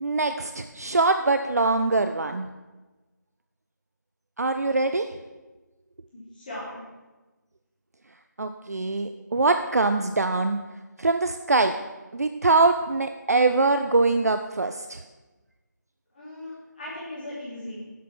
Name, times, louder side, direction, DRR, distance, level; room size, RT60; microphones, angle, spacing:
voice 1, 0.0-2.5 4.4-5.1 8.4-10.6 11.0-11.8 12.1-15.0, right 3 dB, 55° right, 8 dB, 0.5 m, -23 dB
voice 2, 6.1-6.8 16.1-17.8, left 1 dB, 30° left, -9 dB, 3.1 m, -38 dB
8.1 x 7.3 x 5.9 m, 1.2 s
figure-of-eight pair, 160°, 10 cm